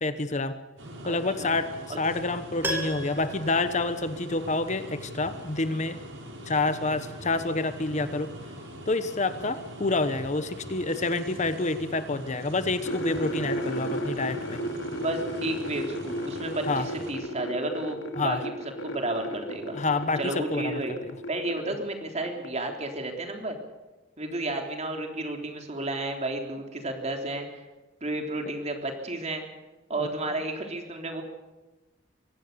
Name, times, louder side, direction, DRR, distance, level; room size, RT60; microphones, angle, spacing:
voice 1, 0.0-0.6 1.0-1.7 2.0-6.0 6.5-8.3 8.9-14.6 16.7-16.9 18.2-18.4 19.7-21.0 30.0-30.1, left 3 dB, 40° left, 11 dB, 1.1 m, -28 dB
sound 1, 0.8-17.1, equal, 80° right, 5.6 m, -42 dB
voice 2, 1.0-1.5 1.9-2.0 14.9-18.5 18.8-19.8 20.2-21.0 21.3-23.6 24.2-27.7 28.0-29.4 29.9-31.2, right 2 dB, 35° right, 4 dB, 3.6 m, -32 dB
Piano, 2.6-4.7 5.0-5.1, right 1 dB, 10° right, 3.7 m, -35 dB
sound 2, 12.8-21.8 22.0-22.7, equal, 85° left, 2.6 m, -34 dB
24.0 x 17.5 x 6.9 m, 1.1 s
head